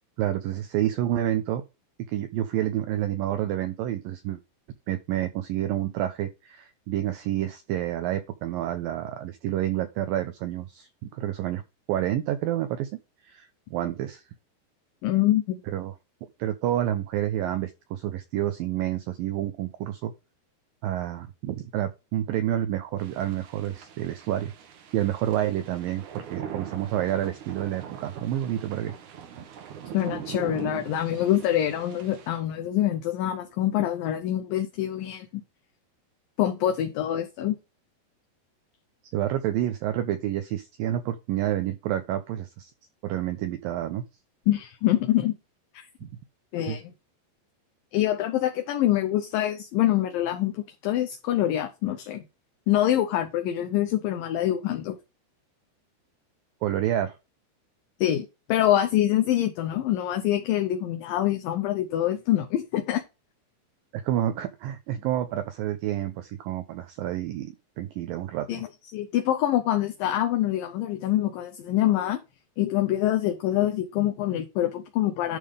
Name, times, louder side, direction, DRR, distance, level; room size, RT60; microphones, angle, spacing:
voice 1, 0.2-1.6 2.1-4.4 4.9-11.6 11.9-12.9 13.2-14.2 15.7-15.9 16.4-20.1 20.8-24.5 24.9-29.0 39.1-42.7 43.0-44.0 46.0-46.1 46.7-46.8 56.6-57.2 63.9-68.6, right 12 dB, 80° right, 2.0 m, -29 dB
voice 2, 15.0-15.6 29.9-35.4 36.4-37.6 44.5-45.4 45.7-45.8 46.5-46.8 47.9-52.2 52.7-55.0 58.0-63.0 68.5-68.7 68.9-72.2 72.6-75.4, left 12 dB, 75° left, 2.1 m, -25 dB
sound 1, 23.0-32.3, right 9 dB, 65° right, 2.1 m, -41 dB
11.0 x 3.7 x 5.0 m
omnidirectional pair, 4.9 m